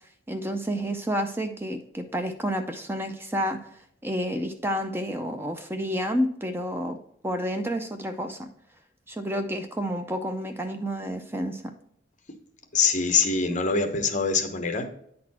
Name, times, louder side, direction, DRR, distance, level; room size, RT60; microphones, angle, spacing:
voice 1, 0.3-3.6 4.0-7.0 7.2-8.5 9.1-11.6, equal, 10° right, 6 dB, 0.4 m, -30 dB
voice 2, 12.7-14.9, left 5 dB, 40° left, 7 dB, 0.9 m, -24 dB
9.6 x 4.1 x 4.2 m, 0.71 s
head